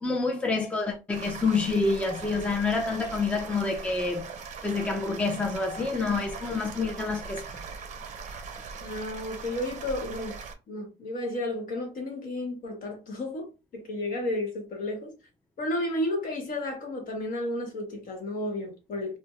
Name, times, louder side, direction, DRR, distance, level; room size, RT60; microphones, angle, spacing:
voice 1, 0.0-4.3 4.6-7.6, left 3 dB, 5° left, 0.4 m, -28 dB
sound 1, 1.1-10.5, right 5 dB, 45° right, 0.5 m, -40 dB
voice 2, 8.8-10.4 10.7-15.1 15.6-19.2, left 1 dB, 55° left, 1.1 m, -32 dB
2.2 x 2.1 x 2.9 m
cardioid pair, 110°, 17 cm